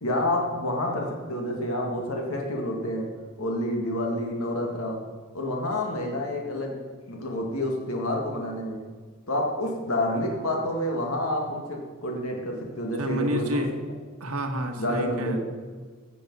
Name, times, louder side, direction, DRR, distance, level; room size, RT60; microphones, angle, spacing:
voice 1, 0.0-3.1 3.4-5.0 5.3-6.8 7.1-8.8 9.3-13.6 14.8-15.4, left 1 dB, 70° left, 0 dB, 1.9 m, -28 dB
voice 2, 13.0-13.7 14.2-15.4, equal, 80° right, 4 dB, 1.5 m, -29 dB
15.5 x 7.2 x 5.4 m, 1.5 s
head